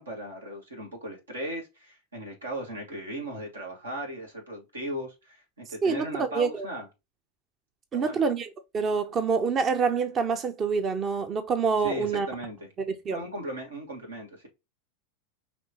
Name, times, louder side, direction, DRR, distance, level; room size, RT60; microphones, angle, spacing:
voice 1, 0.0-6.9 7.9-8.2 11.8-12.7 13.1-14.5, right 1 dB, 90° right, 1.5 m, -37 dB
voice 2, 5.8-6.7 7.9-8.5 8.7-12.3 12.8-13.2, right 5 dB, 30° right, 0.5 m, -26 dB
5.2 x 3.0 x 2.8 m
hypercardioid pair, 90°, 0 cm